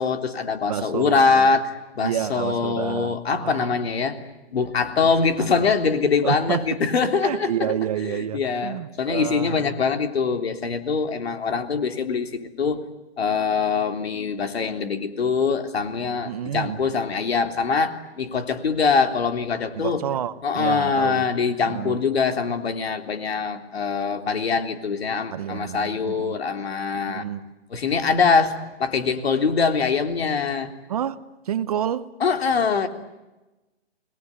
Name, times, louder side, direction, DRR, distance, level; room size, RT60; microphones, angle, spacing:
voice 1, 0.0-4.2 4.5-7.5 8.1-12.8 13.2-20.0 20.4-27.2 27.7-30.7 32.2-32.9, left 5 dB, 65° left, 3.5 m, -23 dB
voice 2, 0.7-1.5 2.0-3.7 5.0-5.1 5.4-5.7 6.2-6.7 7.2-9.8 16.2-16.8 19.7-21.3 21.6-22.0 25.3-26.4 27.1-27.4 30.9-32.1, right 10 dB, 35° right, 1.0 m, -29 dB
29.5 x 20.5 x 9.7 m
hypercardioid pair, 160°, 33 cm